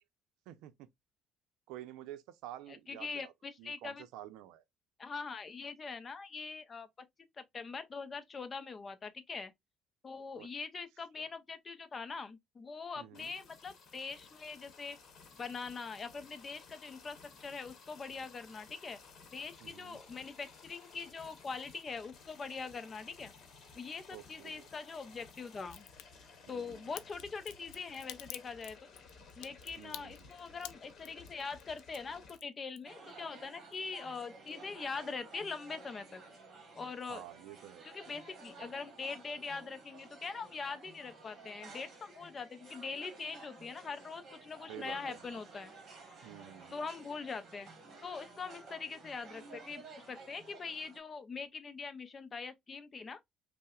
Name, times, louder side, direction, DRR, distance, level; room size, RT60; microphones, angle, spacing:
voice 1, 0.5-0.9 1.7-3.3 3.6-4.6 10.3-10.5 11.2-11.3 13.0-13.4 19.6-20.0 24.1-24.7 26.5-27.0 29.8-30.3 37.1-37.9 44.7-45.4 46.2-46.8, right 13 dB, 85° right, 0.5 m, -50 dB
voice 2, 2.7-4.0 5.0-6.9 7.4-9.5 10.0-15.0 15.4-19.0 19.3-23.3 23.7-25.9 26.5-28.8 29.4-36.2 36.8-37.2 37.8-45.7 46.7-47.7 48.0-53.2, left 4 dB, 25° left, 0.4 m, -43 dB
sound 1, 13.1-32.4, left 4 dB, 40° left, 1.0 m, -57 dB
Crack, 25.7-26.0 27.0-33.2 33.5-34.2 34.5-34.6, left 13 dB, 85° left, 0.4 m, -48 dB
sound 2, 32.8-51.0, right 3 dB, 35° right, 1.2 m, -54 dB
5.5 x 2.0 x 2.3 m
cardioid pair, 165°, 0 cm